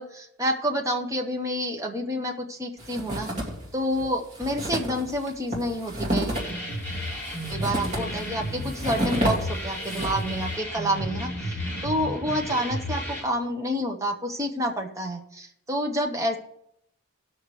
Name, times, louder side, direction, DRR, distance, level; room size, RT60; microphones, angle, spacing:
voice 1, 0.0-3.3 3.7-6.4 7.5-11.6 11.8-16.4, equal, 15° right, 2 dB, 0.9 m, -28 dB
sound 1, 2.8-3.7 4.0-4.1 4.3-10.4, equal, 35° right, 2.3 m, -30 dB
sound 2, 6.3-13.2, equal, 10° left, 2.6 m, -33 dB
18.5 x 6.4 x 3.2 m, 0.76 s
head